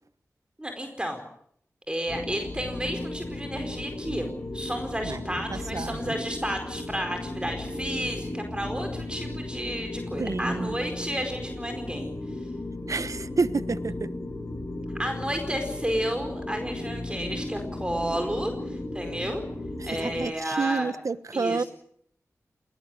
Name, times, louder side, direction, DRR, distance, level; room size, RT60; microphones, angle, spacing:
voice 1, 0.6-1.2 1.9-12.1 15.0-19.4 19.8-20.9 21.3-21.7, equal, 15° right, 5 dB, 4.6 m, -32 dB
sound 1, 2.1-20.2, left 2 dB, 50° left, 8.0 m, -35 dB
voice 2, 5.5-6.1 10.2-10.8 12.9-14.1 19.8-21.6, right 4 dB, 70° right, 14 dB, 1.2 m, -29 dB
20.0 x 19.5 x 9.8 m, 0.68 s
cardioid pair, 45°, 6 cm